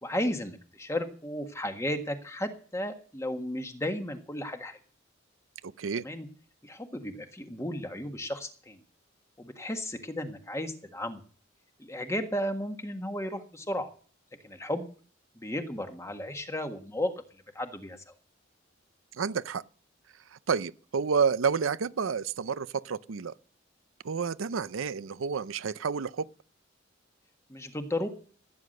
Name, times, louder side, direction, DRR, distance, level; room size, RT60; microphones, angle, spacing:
voice 1, 0.0-4.8 6.0-6.3 6.6-8.8 9.4-11.2 11.8-13.9 14.4-14.9 15.3-17.1 17.5-18.1 27.5-28.1, left 1 dB, 15° left, 1.5 m, -34 dB
voice 2, 5.6-6.0 19.2-19.6 20.3-23.3 24.0-26.3, right 6 dB, 85° right, 0.6 m, -30 dB
15.5 x 9.6 x 6.5 m
head